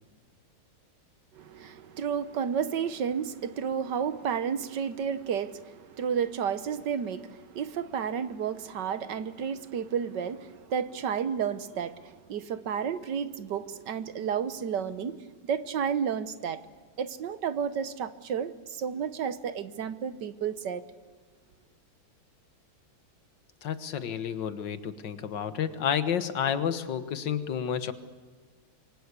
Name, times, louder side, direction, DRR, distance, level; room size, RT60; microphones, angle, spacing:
voice 1, 1.3-16.6 17.0-20.8, right 7 dB, 65° right, 1.6 m, -32 dB
voice 2, 23.6-27.9, left 8 dB, 70° left, 2.0 m, -30 dB
26.5 x 24.0 x 8.3 m
omnidirectional pair, 2.1 m